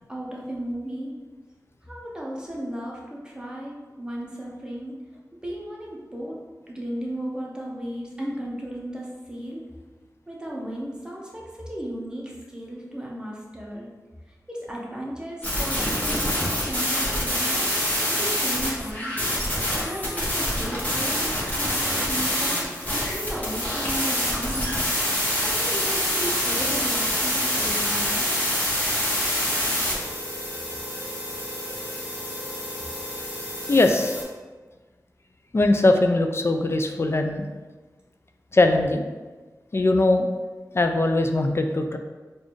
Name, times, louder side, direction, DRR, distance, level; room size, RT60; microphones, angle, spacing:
voice 1, 0.1-1.1 1.8-4.9 5.4-9.6 10.3-13.9 14.3-17.7 18.1-19.2 19.8-24.8 25.4-28.2, equal, 10° right, -4 dB, 0.9 m, -35 dB
sound 1, 15.4-34.2, equal, 25° left, 1.1 m, -26 dB
voice 2, 33.7-34.2 35.5-37.5 38.5-39.1 39.7-40.3 40.7-42.0, left 2 dB, 40° left, 5 dB, 0.3 m, -20 dB
3.9 x 2.5 x 3.1 m, 1.3 s
wide cardioid pair, 55°, 7 cm